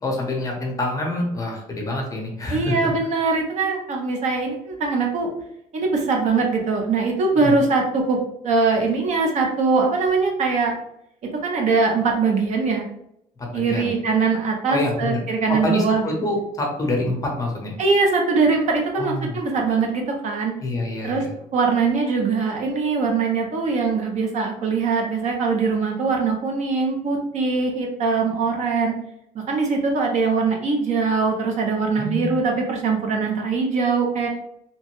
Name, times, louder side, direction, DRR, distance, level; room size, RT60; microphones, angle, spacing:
voice 1, 0.0-2.9 7.3-7.5 13.4-13.9 14.7-15.2 15.5-17.8 18.9-19.4 20.6-21.3 32.0-32.4, left 1 dB, 25° left, 0 dB, 0.7 m, -26 dB
voice 2, 2.5-5.3 5.7-8.2 8.4-10.7 11.4-12.8 13.5-16.1 17.8-20.5 21.0-21.2 21.5-28.9 29.3-34.3, right 4 dB, 55° right, 1 dB, 0.6 m, -22 dB
2.9 x 2.1 x 3.0 m, 0.75 s
cardioid pair, 140°, 15 cm